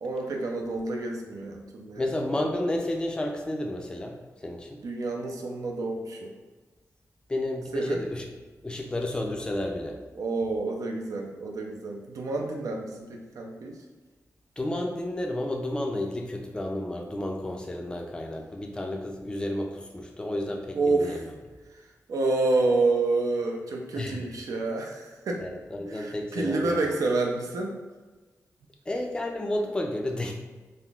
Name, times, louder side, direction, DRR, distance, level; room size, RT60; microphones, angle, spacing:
voice 1, 0.0-2.1 4.8-6.3 7.7-8.0 10.1-13.8 20.7-21.3 21.7-25.4 25.9-27.8, right 3 dB, 80° right, 1 dB, 0.5 m, -29 dB
voice 2, 2.0-4.2 4.4-4.8 7.3-8.3 8.6-10.0 14.6-21.3 24.0-24.2 25.4-26.9 28.9-30.3, left 1 dB, 15° left, 2 dB, 0.3 m, -31 dB
3.4 x 2.5 x 2.3 m, 1.3 s
wide cardioid pair, 105°, 6 cm